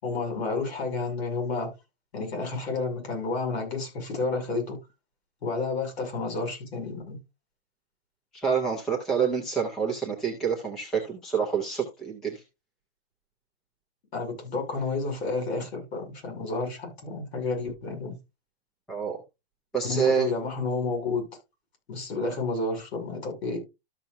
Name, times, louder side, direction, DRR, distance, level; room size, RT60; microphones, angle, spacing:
voice 1, 0.0-1.7 2.1-4.8 5.4-7.2 14.1-18.2 19.9-21.2 21.9-23.6, left 3 dB, 70° left, 6.2 m, -30 dB
voice 2, 8.3-12.4 18.9-19.2 19.7-20.3, right 6 dB, ahead, 0.3 m, -27 dB
13.0 x 5.7 x 2.6 m
hypercardioid pair, 165°, 33 cm